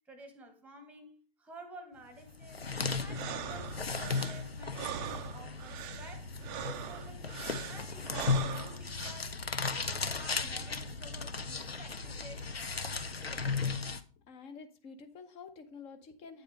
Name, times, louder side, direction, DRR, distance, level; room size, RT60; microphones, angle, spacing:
voice 1, 0.0-13.0, right 1 dB, 5° right, 1.2 m, -52 dB
sound 1, 2.2-14.0, left 4 dB, 85° left, 0.8 m, -36 dB
sound 2, 3.1-9.1, right 10 dB, 25° right, 0.6 m, -42 dB
voice 2, 14.2-16.4, left 5 dB, 20° left, 0.9 m, -49 dB
8.9 x 7.8 x 3.3 m
figure-of-eight pair, 115°, 29 cm